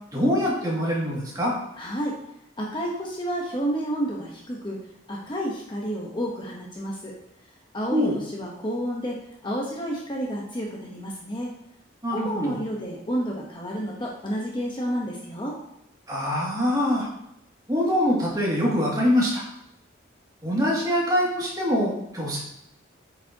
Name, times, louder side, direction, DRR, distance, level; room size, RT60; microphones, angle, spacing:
voice 1, 0.1-1.5 7.9-8.2 12.0-12.6 16.1-17.1 17.7-19.4 20.4-22.4, equal, 20° right, -5 dB, 2.3 m, -24 dB
voice 2, 1.8-2.2 2.6-4.8 5.1-7.1 7.7-11.5 12.1-15.6, equal, 25° left, -2 dB, 1.1 m, -30 dB
9.1 x 7.1 x 2.9 m, 0.79 s
head